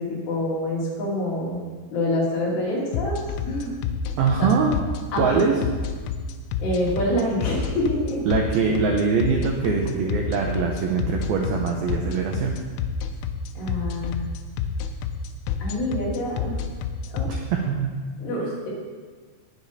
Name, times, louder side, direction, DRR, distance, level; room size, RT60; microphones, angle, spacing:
voice 1, 0.0-1.6 1.9-3.7 4.4-4.5 5.1-5.4 6.6-8.2 13.6-14.3 15.6-16.6 17.1-17.3 18.2-18.7, left 1 dB, 60° left, -5 dB, 4.8 m, -26 dB
sound 1, 2.9-17.3, left 9 dB, 85° left, 3.3 m, -28 dB
voice 2, 4.2-4.8 5.2-5.6 8.3-12.5 17.3-17.9, right 5 dB, 80° right, 1 dB, 2.2 m, -23 dB
20.0 x 7.0 x 4.2 m, 1.5 s
omnidirectional pair, 5.6 m